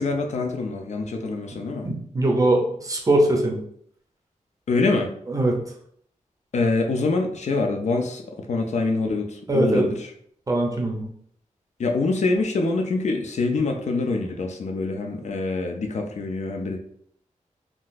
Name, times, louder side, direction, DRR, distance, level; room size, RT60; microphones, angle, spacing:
voice 1, 0.0-1.9 4.7-5.1 6.5-9.9 11.8-16.8, left 3 dB, 65° left, 3 dB, 0.5 m, -25 dB
voice 2, 1.8-3.6 5.3-5.6 9.5-9.9 10.5-11.1, right 1 dB, 25° right, 0 dB, 0.6 m, -21 dB
3.7 x 2.4 x 2.5 m, 0.65 s
wide cardioid pair, 155°, 13 cm